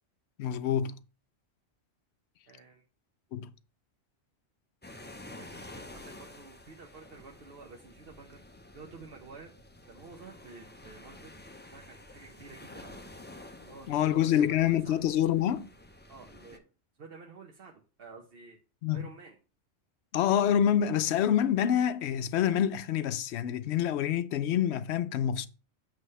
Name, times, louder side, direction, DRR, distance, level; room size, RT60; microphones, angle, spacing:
voice 1, 0.4-1.0 3.3-3.5 13.9-15.7 18.8-19.0 20.1-25.5, left 10 dB, 70° left, 0.8 m, -27 dB
voice 2, 2.5-2.8 5.2-8.4 8.7-9.5 9.9-11.3 11.7-13.1 13.6-15.0 16.1-16.7 17.0-18.6 18.9-19.4, right 4 dB, 55° right, 1.0 m, -50 dB
sound 1, 4.8-16.6, left 1 dB, 15° left, 0.3 m, -50 dB
8.2 x 3.4 x 5.4 m
omnidirectional pair, 1.2 m